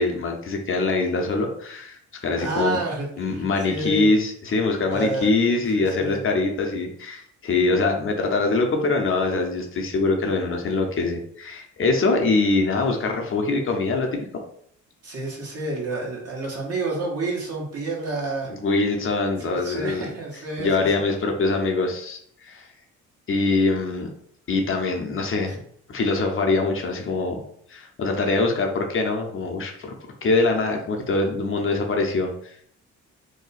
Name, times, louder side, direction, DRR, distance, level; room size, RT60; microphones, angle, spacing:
voice 1, 0.0-2.8 3.2-14.2 18.6-20.0 20.6-22.7 23.3-24.1 24.5-25.6 25.9-27.4 27.7-29.9 30.2-32.5, left 3 dB, 45° left, 2 dB, 0.7 m, -23 dB
voice 2, 2.4-4.1 4.9-5.3 5.8-6.3 15.0-18.5 19.1-20.9, right 2 dB, 50° right, -3 dB, 1.3 m, -30 dB
2.8 x 2.2 x 4.1 m, 0.66 s
cardioid pair, 90°, 30 cm